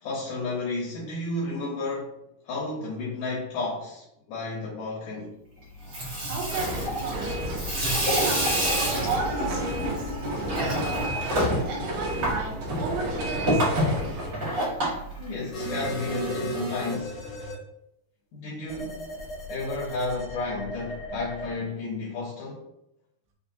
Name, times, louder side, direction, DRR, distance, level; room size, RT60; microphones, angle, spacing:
voice 1, 0.0-5.4 15.2-17.2 18.3-19.0 19.5-22.7, left 3 dB, 80° left, 1.8 m, -32 dB
Water tap faucet / Sink (filling or washing), 5.7-15.9, equal, 55° right, 1.2 m, -29 dB
voice 2, 6.2-7.4 8.0-13.7, right 3 dB, 90° right, 2.9 m, -34 dB
sound 1, 6.5-14.3, right 1 dB, 75° right, 1.9 m, -32 dB
sound 2, 15.5-17.5 18.7-21.5, equal, 65° left, 1.2 m, -35 dB
6.5 x 2.2 x 2.7 m
omnidirectional pair, 4.7 m